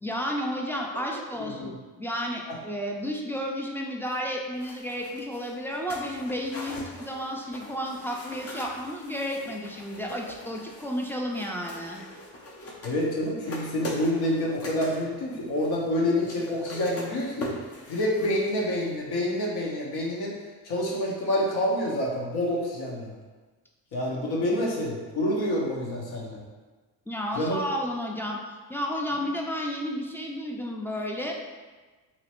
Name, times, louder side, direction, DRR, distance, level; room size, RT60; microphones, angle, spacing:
voice 1, 0.0-12.0 27.1-31.3, equal, 5° left, -1 dB, 0.4 m, -32 dB
voice 2, 1.4-1.7 2.5-2.6 12.8-17.6 17.9-20.3 20.6-23.1 23.9-26.4 27.3-27.6, left 1 dB, 65° left, -3 dB, 1.0 m, -27 dB
sound 1, 4.6-18.9 19.2-19.3, left 1 dB, 35° left, 0.7 m, -42 dB
3.1 x 2.9 x 3.0 m, 1.3 s
supercardioid pair, 75°, 41 cm